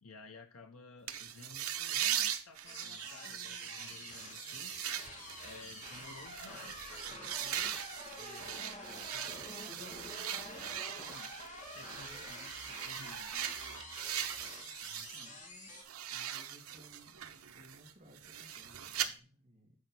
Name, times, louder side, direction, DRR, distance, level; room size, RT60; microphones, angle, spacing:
voice 1, 0.0-4.8 5.4-7.8 8.1-11.3 11.7-13.5, left 3 dB, 85° left, 6 dB, 0.9 m, -55 dB
sound 1, 1.1-15.3 15.6-19.1, right 10 dB, 90° right, 0.8 m, -40 dB
sound 2, 2.7-15.8, left 1 dB, 35° left, 2.1 m, -48 dB
voice 2, 16.1-19.8, equal, 30° right, -1 dB, 2.0 m, -60 dB
8.1 x 4.5 x 5.9 m, 0.35 s
head